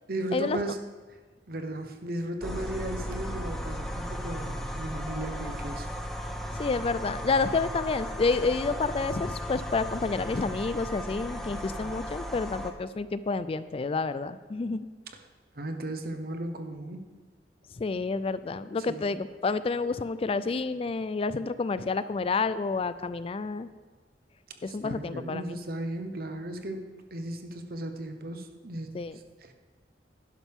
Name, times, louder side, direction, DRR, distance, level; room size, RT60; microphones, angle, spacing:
voice 1, 0.1-0.8 1.5-5.9 15.1-15.2 15.5-17.0 18.9-19.2 24.7-28.9 29.4-29.5, right 1 dB, 55° right, 6 dB, 1.0 m, -36 dB
sound 1, 2.4-12.7, equal, ahead, 0.9 m, -36 dB
voice 2, 6.5-14.9 17.8-23.7 24.6-25.6 28.9-29.1, left 4 dB, 35° left, 14 dB, 0.3 m, -29 dB
11.5 x 11.5 x 3.6 m, 1.4 s
head